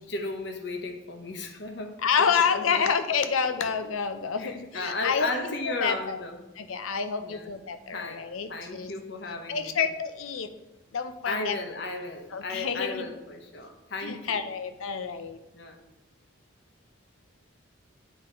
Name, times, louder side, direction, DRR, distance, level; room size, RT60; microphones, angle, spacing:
voice 1, 0.0-2.0 2.5-2.9 4.4-6.4 7.2-7.5 7.9-9.8 11.2-14.5 15.5-15.8, left 2 dB, 55° left, 4 dB, 0.9 m, -35 dB
voice 2, 2.0-5.3 5.6-6.2 6.6-8.9 9.5-10.5 10.9-11.6 12.3-13.1 14.0-15.4, left 6 dB, 85° left, 9 dB, 0.6 m, -28 dB
9.3 x 3.8 x 4.4 m, 1.0 s
head